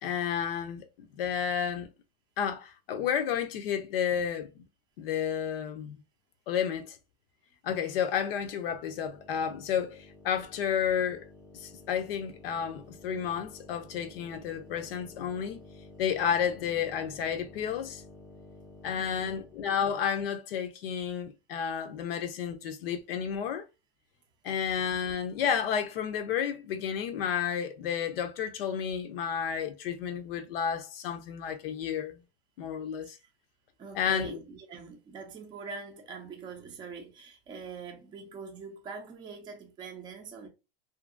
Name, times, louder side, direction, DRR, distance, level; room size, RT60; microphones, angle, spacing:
voice 1, 0.0-0.9 1.2-1.9 2.4-4.5 5.0-6.0 6.5-7.0 7.6-11.3 11.5-15.6 16.0-18.0 18.8-23.7 24.4-32.2 32.6-33.2 34.0-34.4, left 8 dB, 70° left, 0.6 m, -31 dB
sound 1, 8.6-19.7, left 2 dB, 5° left, 0.8 m, -52 dB
voice 2, 18.9-19.4 33.0-33.3 33.8-40.5, right 5 dB, 15° right, 0.5 m, -44 dB
2.6 x 2.6 x 2.4 m
supercardioid pair, 145°, 30 cm